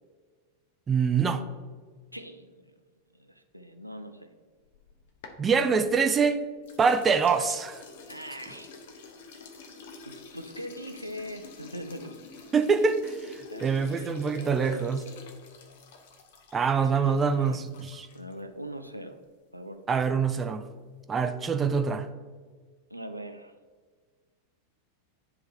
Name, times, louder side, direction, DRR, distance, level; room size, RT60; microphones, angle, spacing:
voice 1, 0.9-1.4 5.4-6.4 6.8-7.8 12.5-15.1 16.5-18.1 19.9-20.7 21.1-22.1, right 5 dB, 20° right, 8 dB, 0.5 m, -25 dB
voice 2, 2.1-2.7 3.1-4.3 8.1-8.7 10.0-12.2 13.5-14.8 16.6-17.6 18.1-19.2 19.5-20.0 22.9-23.5, equal, 90° right, 7 dB, 0.4 m, -42 dB
sound 1, 4.6-6.2 6.6-18.4, left 4 dB, 55° left, 0.8 m, -48 dB
10.0 x 3.5 x 3.2 m, 1.5 s
figure-of-eight pair, 90°, 0 cm